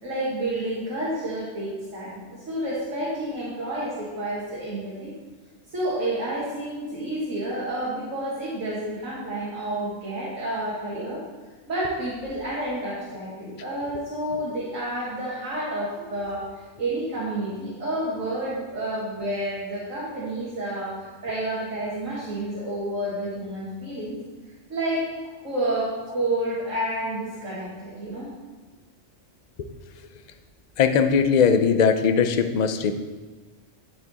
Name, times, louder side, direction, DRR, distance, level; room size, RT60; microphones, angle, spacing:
voice 1, 0.0-5.1 5.7-11.2 11.7-24.2 24.7-25.0 25.4-28.3, right 1 dB, 80° right, -7 dB, 2.0 m, -30 dB
voice 2, 30.8-32.9, left 6 dB, 60° left, 8 dB, 0.4 m, -20 dB
11.0 x 4.5 x 4.1 m, 1.3 s
omnidirectional pair, 1.3 m